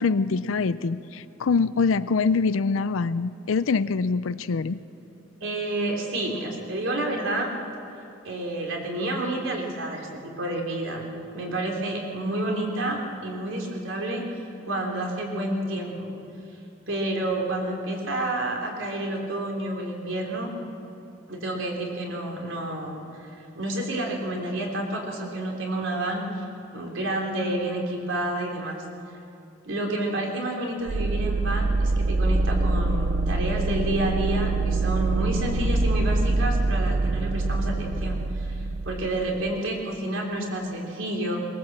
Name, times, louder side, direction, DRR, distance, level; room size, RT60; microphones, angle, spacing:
voice 1, 0.0-4.8, left 4 dB, 90° left, 14 dB, 0.5 m, -24 dB
voice 2, 5.4-7.5 8.2-11.0 11.3-14.2 14.6-16.1 16.9-20.5 21.3-26.4 26.7-28.8 29.6-41.4, right 1 dB, 80° right, 0 dB, 3.6 m, -29 dB
sound 1, 30.9-39.6, right 2 dB, 45° right, 0.5 m, -25 dB
22.0 x 19.0 x 7.5 m, 2.8 s
head